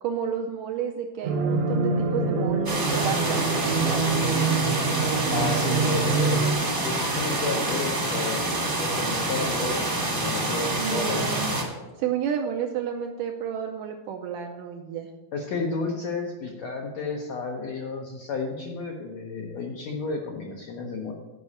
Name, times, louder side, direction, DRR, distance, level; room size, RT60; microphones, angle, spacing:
voice 1, 0.0-4.0 10.8-11.5 12.0-15.1, right 8 dB, 80° right, 2 dB, 1.9 m, -31 dB
sound 1, 1.2-6.5, right 4 dB, 65° right, 1.7 m, -25 dB
sound 2, 2.6-11.6, right 2 dB, 30° right, 0.9 m, -27 dB
voice 2, 5.3-11.4 15.3-21.1, left 4 dB, 80° left, 1 dB, 1.5 m, -32 dB
10.0 x 5.4 x 7.0 m, 1.1 s
omnidirectional pair, 4.4 m